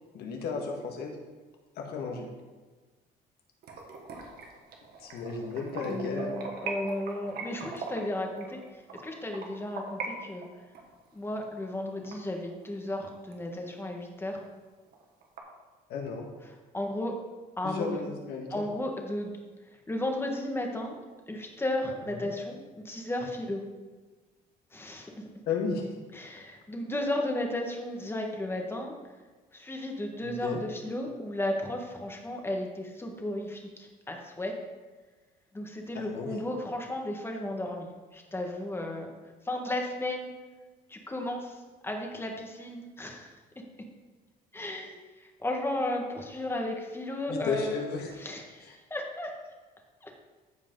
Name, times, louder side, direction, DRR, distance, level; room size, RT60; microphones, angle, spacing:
voice 1, 0.1-1.2 1.8-2.3 5.0-6.3 15.9-16.3 17.6-18.6 22.1-22.3 25.5-25.9 30.2-30.6 35.9-36.4 47.3-48.1 48.6-48.7, left 4 dB, 75° left, 1 dB, 1.8 m, -34 dB
sound 1, 3.6-10.1 10.4-12.9 13.3-13.4 13.8-13.9 14.3-14.4 14.7-15.4, right 4 dB, 65° right, 1.7 m, -41 dB
voice 2, 5.9-10.4 11.1-14.4 16.7-17.2 17.6-18.0 18.5-19.3 19.9-21.0 21.3-23.6 24.7-25.1 26.1-28.9 29.5-34.6 35.5-39.1 39.4-40.3 40.9-43.3 44.5-47.7 48.2-49.3 50.0-50.1, left 1 dB, 15° left, 2 dB, 1.6 m, -34 dB
14.5 x 4.9 x 3.9 m, 1.3 s
cardioid pair, 110°, 17 cm